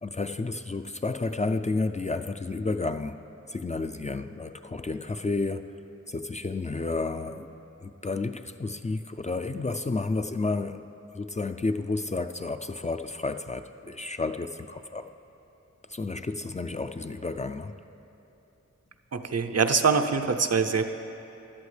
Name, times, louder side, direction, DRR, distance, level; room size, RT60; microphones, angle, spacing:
voice 1, 0.0-3.2 3.5-5.7 6.1-7.5 7.8-10.8 11.1-15.1 15.9-17.8, left 3 dB, 25° left, 8 dB, 0.4 m, -31 dB
voice 2, 19.1-20.8, right 5 dB, 60° right, 7 dB, 0.6 m, -24 dB
16.0 x 11.0 x 3.3 m, 2.9 s
wide cardioid pair, 60°, 29 cm